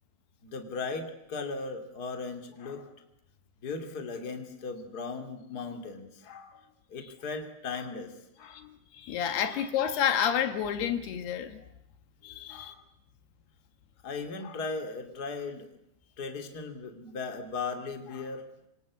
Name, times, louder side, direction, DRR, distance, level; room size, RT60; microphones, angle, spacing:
voice 1, 0.4-2.9 3.6-6.6 6.9-8.6 12.5-12.8 14.0-15.7 16.2-18.5, left 4 dB, 25° left, 2.9 m, -37 dB
voice 2, 8.5-11.6 12.2-12.7, left 9 dB, 75° left, 3.6 m, -30 dB
26.5 x 26.0 x 8.5 m
omnidirectional pair, 4.7 m